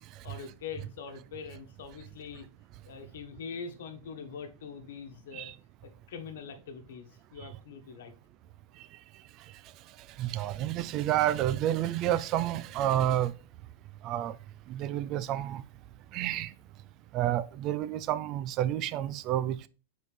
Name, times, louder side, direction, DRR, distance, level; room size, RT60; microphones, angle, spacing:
voice 1, 0.2-2.5 2.8-5.5 6.1-8.1, left 6 dB, 70° left, 1.3 m, -43 dB
voice 2, 10.2-13.3 14.0-14.3 14.7-15.6 16.1-16.5 17.1-19.7, right 12 dB, 30° right, 0.3 m, -29 dB
7.1 x 4.1 x 3.2 m
supercardioid pair, 165°, 0 cm